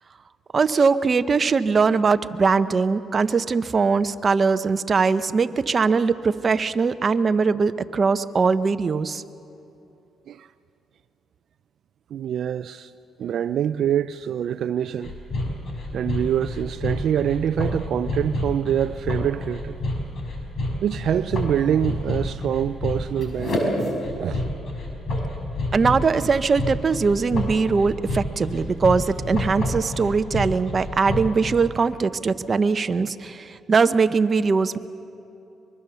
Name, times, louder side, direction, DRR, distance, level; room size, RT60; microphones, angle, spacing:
voice 1, 0.5-9.2 25.7-34.8, right 4 dB, 40° right, 0.8 m, -21 dB
voice 2, 12.1-12.9 13.2-15.1 15.9-19.8 20.8-23.6 24.2-24.4, right 9 dB, 65° right, 0.4 m, -25 dB
sound 1, 15.0-31.5, left 1 dB, 50° left, 5.2 m, -28 dB
24.0 x 22.5 x 6.9 m
cardioid pair, 90°, 0 cm